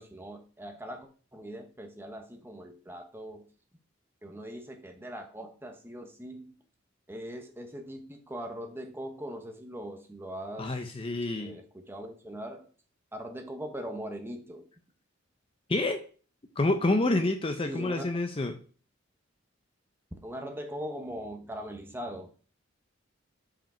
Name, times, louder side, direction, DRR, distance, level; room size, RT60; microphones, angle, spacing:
voice 1, 0.0-3.5 4.2-6.6 7.1-10.7 11.4-12.7 13.1-14.7 17.6-18.0 20.2-22.3, equal, 10° right, 4 dB, 1.1 m, -41 dB
voice 2, 10.6-11.6 15.7-16.0 16.6-18.6, left 2 dB, 30° left, 6 dB, 0.6 m, -28 dB
5.9 x 5.0 x 4.4 m, 0.40 s
head